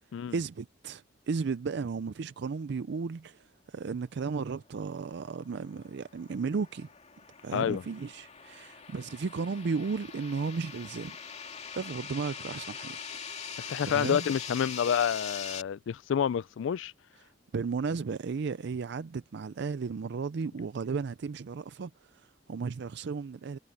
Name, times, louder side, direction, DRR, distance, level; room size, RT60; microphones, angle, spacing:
voice 1, 0.3-6.9 7.4-11.2 11.5-13.0 13.8-14.3 17.5-23.6, right 5 dB, 65° right, 0.4 m, -34 dB
sound 1, 5.2-15.6, left 6 dB, 35° left, 2.7 m, -43 dB
voice 2, 7.5-7.8 13.6-16.9, left 8 dB, 80° left, 0.3 m, -29 dB
head